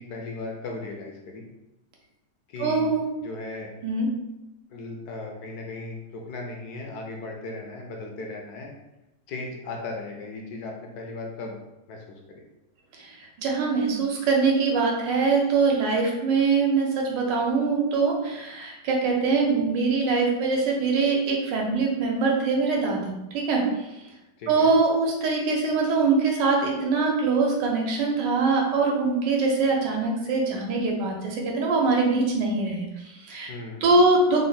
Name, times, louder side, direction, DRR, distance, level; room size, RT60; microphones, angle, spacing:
voice 1, 0.0-1.4 2.5-2.9 3.2-3.7 4.7-8.7 9.3-11.6 11.9-12.4 24.4-24.7 33.5-33.9, left 2 dB, 70° left, 0 dB, 1.0 m, -37 dB
voice 2, 2.6-3.0 3.8-4.1 13.0-23.6 24.5-33.5 33.8-34.4, right 4 dB, 80° right, 0 dB, 1.4 m, -23 dB
3.7 x 2.1 x 3.9 m, 0.97 s
omnidirectional pair, 1.9 m